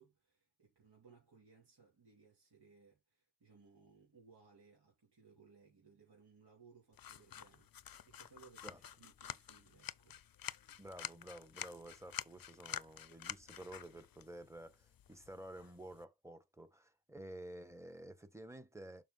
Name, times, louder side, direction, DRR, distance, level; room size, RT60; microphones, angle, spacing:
voice 1, 0.0-7.7 8.0-10.2, right 5 dB, 70° right, 3.1 m, -64 dB
sound 1, 6.9-16.0, left 10 dB, 60° left, 0.6 m, -49 dB
voice 2, 10.8-19.0, right 1 dB, 5° right, 1.4 m, -52 dB
7.0 x 4.6 x 4.1 m
cardioid pair, 55°, 41 cm